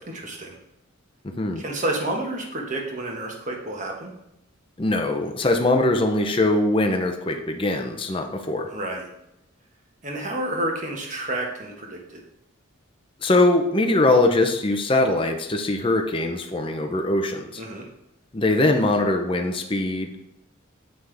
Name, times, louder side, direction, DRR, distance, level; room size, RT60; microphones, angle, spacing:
voice 1, 0.1-0.6 1.5-4.1 8.7-9.1 10.0-12.2 17.6-17.9, right 1 dB, 35° right, 0 dB, 1.4 m, -30 dB
voice 2, 1.2-1.6 4.8-8.7 13.2-17.6 18.3-20.2, left 2 dB, 25° left, 4 dB, 0.7 m, -22 dB
7.8 x 5.7 x 3.4 m, 0.86 s
head